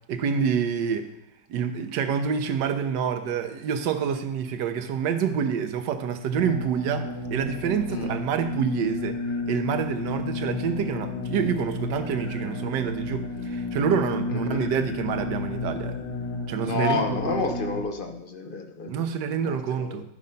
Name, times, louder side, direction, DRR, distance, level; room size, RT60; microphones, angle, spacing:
voice 1, 0.1-1.1 1.5-9.2 9.5-16.0 16.5-17.3 18.9-20.0, right 7 dB, 70° right, 8 dB, 1.4 m, -27 dB
sound 1, 6.3-17.8, left 3 dB, 85° left, 2.0 m, -32 dB
voice 2, 14.3-14.6 16.6-19.1 19.4-20.0, left 3 dB, 50° left, 5 dB, 0.6 m, -30 dB
13.0 x 5.3 x 5.3 m, 0.82 s
omnidirectional pair, 2.1 m